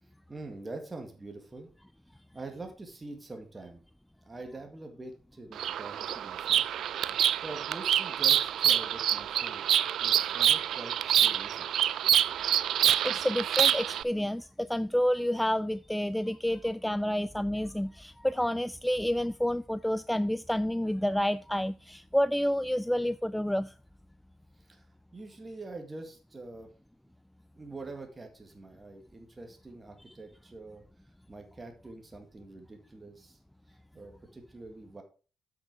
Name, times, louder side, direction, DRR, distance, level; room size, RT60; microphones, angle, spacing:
voice 1, 0.0-1.7 2.3-3.8 4.2-6.7 7.4-9.7 10.0-11.7 24.6-24.9 25.1-26.7 27.6-30.8 31.3-33.4 33.7-35.0, right 2 dB, 20° right, 1.9 m, -45 dB
Bird vocalization bird call bird song, 5.5-14.0, right 10 dB, 70° right, 0.4 m, -26 dB
voice 2, 13.0-23.7, equal, 5° left, 0.3 m, -29 dB
7.9 x 6.7 x 4.9 m
cardioid pair, 90°, 0 cm